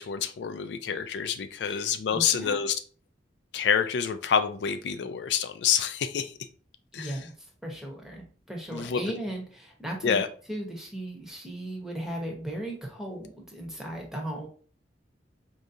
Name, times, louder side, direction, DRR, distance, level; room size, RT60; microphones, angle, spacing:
voice 1, 0.0-2.8 3.5-6.3 6.9-7.1 8.7-9.0 10.0-10.3, left 7 dB, 75° left, 9 dB, 0.3 m, -27 dB
voice 2, 2.1-2.6 6.9-7.3 7.6-10.2 10.5-14.5, right 1 dB, 5° right, -1 dB, 0.9 m, -37 dB
4.8 x 2.7 x 2.5 m, 0.42 s
head